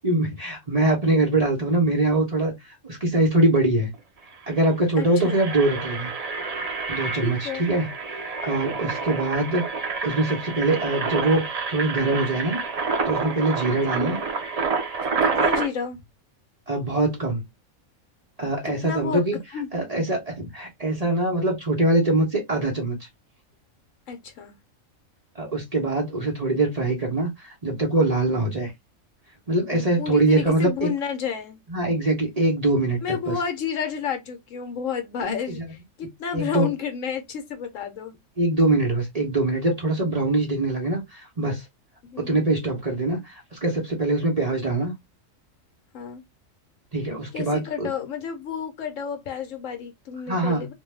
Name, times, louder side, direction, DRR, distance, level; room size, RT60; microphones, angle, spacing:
voice 1, 0.0-2.5 2.8-3.9 4.5-6.1 6.9-7.8 8.4-9.6 10.0-12.6 13.0-14.2 16.7-17.5 18.4-19.4 19.7-23.1 25.3-28.7 29.5-30.9 31.7-33.3 35.2-35.6 36.3-36.7 38.4-41.6 42.2-44.9 46.9-47.9 50.3-50.7, right 2 dB, 35° right, 0.8 m, -23 dB
Engine, 3.9-4.0 4.3-4.5 5.0-15.7, right 4 dB, 70° right, 0.3 m, -28 dB
voice 2, 5.0-5.4 7.2-7.6 13.9-14.2 15.2-16.0 18.6-19.2 19.5-19.7 24.1-24.5 29.7-31.6 33.0-35.6 36.0-38.2 42.0-42.4 45.9-46.2 47.3-50.7, left 7 dB, 70° left, 1.1 m, -31 dB
2.6 x 2.2 x 3.2 m
omnidirectional pair, 1.4 m